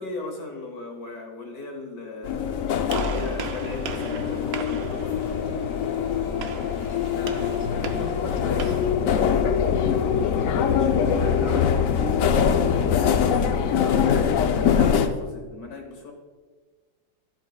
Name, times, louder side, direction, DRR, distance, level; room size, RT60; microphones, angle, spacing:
voice 1, 0.0-5.4 9.8-12.3 12.7-16.1, left 3 dB, 55° left, 3 dB, 1.4 m, -37 dB
sound 1, 2.2-15.1, left 7 dB, 80° left, 0.7 m, -23 dB
Gunshot gunfire, 2.9-8.9, right 6 dB, 65° right, 0.9 m, -38 dB
voice 2, 7.1-9.2, left 1 dB, 20° left, 1 dB, 0.9 m, -37 dB
12.5 x 8.2 x 2.3 m, 1.4 s
omnidirectional pair, 2.1 m